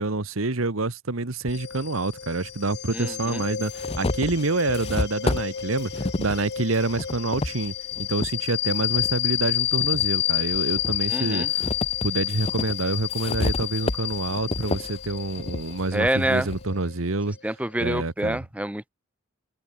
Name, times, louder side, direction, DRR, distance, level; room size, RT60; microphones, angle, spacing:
voice 1, 0.0-11.7 12.0-17.4 17.8-18.4, right 2 dB, 80° right, 1.5 m, -27 dB
sound 1, 1.5-17.8, left 12 dB, 55° left, 0.9 m, -30 dB
sound 2, 1.5-1.6 2.6-2.7 3.2-8.4 8.9-10.1 10.5-16.7, left 2 dB, 30° left, 0.8 m, -31 dB
voice 2, 2.9-3.4 11.1-11.5 15.9-16.5 17.4-18.9, right 1 dB, 5° right, 0.9 m, -27 dB
head